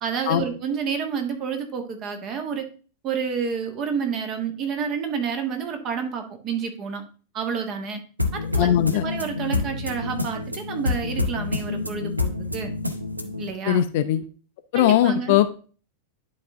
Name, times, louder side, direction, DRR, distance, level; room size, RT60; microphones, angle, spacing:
voice 1, 0.0-2.7 3.0-7.0 7.3-8.0 8.3-12.7 13.4-13.8 14.7-15.4, right 6 dB, 35° right, 5 dB, 1.5 m, -29 dB
sound 1, 8.2-13.5, left 3 dB, 85° right, 0.8 m, -27 dB
voice 2, 8.6-9.1 13.7-14.2 14.7-15.5, left 11 dB, 50° left, 11 dB, 0.6 m, -19 dB
10.5 x 4.2 x 3.6 m, 0.38 s
figure-of-eight pair, 90°, 0 cm